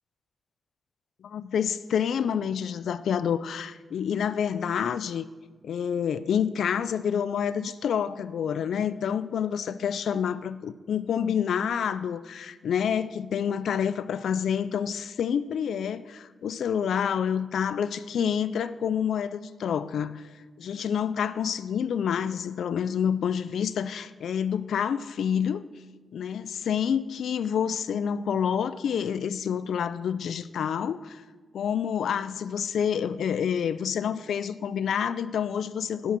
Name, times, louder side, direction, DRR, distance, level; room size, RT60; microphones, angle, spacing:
voice 1, 1.2-5.2 5.6-20.2 20.6-25.6 26.1-31.2 31.5-36.2, left 8 dB, 75° left, 15 dB, 0.4 m, -28 dB
11.0 x 8.3 x 5.9 m, 1.3 s
wide cardioid pair, 165°, 0 cm